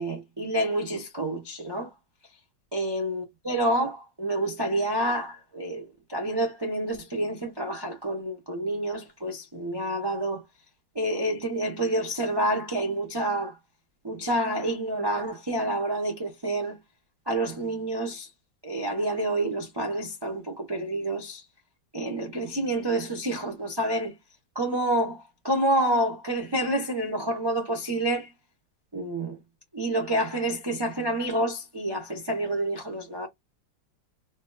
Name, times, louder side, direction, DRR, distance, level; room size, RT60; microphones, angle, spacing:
voice 1, 0.0-1.9 2.7-10.4 10.9-13.6 14.0-16.8 17.3-18.3 18.6-21.4 21.9-24.1 24.5-28.3 28.9-29.4 29.7-33.3, right 1 dB, 35° right, 0.3 m, -28 dB
4.3 x 2.6 x 2.2 m
omnidirectional pair, 2.0 m